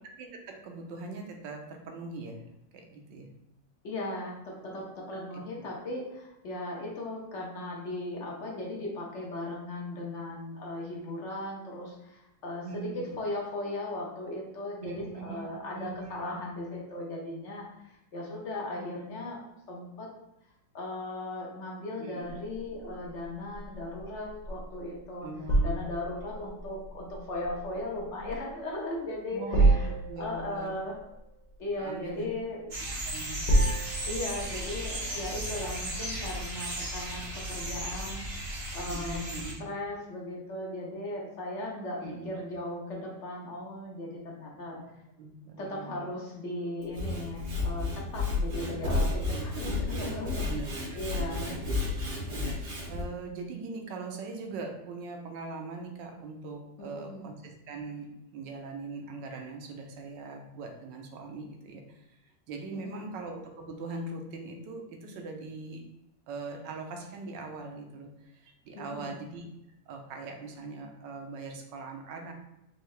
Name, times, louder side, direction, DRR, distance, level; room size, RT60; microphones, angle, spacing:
voice 1, 0.0-2.4 2.7-3.3 5.1-5.2 12.6-13.2 14.8-16.4 22.0-22.3 25.2-25.8 29.3-30.7 31.8-32.3 32.8-33.5 38.9-39.6 42.0-42.3 44.7-46.0 49.3-51.6 52.3-62.2 62.5-65.8 66.3-69.4 69.9-72.3, right 3 dB, 70° right, 3 dB, 1.2 m, -41 dB
voice 2, 3.8-19.4 19.7-20.1 20.7-25.3 25.6-29.9 30.2-30.9 31.6-32.6 34.1-39.2 39.6-44.8 45.6-50.5 50.9-51.6 56.8-57.3 62.7-63.1 68.7-69.1, left 1 dB, 55° left, -2 dB, 0.9 m, -37 dB
sound 1, 22.2-34.9, right 2 dB, 85° left, 0.3 m, -30 dB
sound 2, 32.7-39.5, right 1 dB, 50° right, 0.7 m, -36 dB
Sawing / Wood, 46.8-53.0, left 2 dB, 90° right, 2.3 m, -31 dB
4.6 x 2.8 x 3.2 m, 0.87 s
omnidirectional pair, 2.2 m